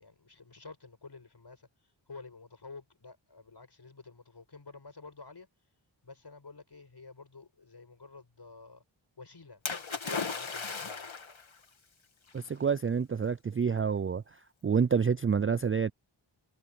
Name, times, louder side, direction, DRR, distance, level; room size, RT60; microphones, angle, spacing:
voice 1, 0.0-8.8 9.2-9.6 10.0-11.1, left 4 dB, 55° left, 5.8 m, -51 dB
Splash splatter, 9.6-11.4 12.4-12.5, left 5 dB, 75° left, 2.4 m, -36 dB
voice 2, 12.3-14.2 14.6-15.9, right 6 dB, 30° right, 0.3 m, -28 dB
wide cardioid pair, 60°, 47 cm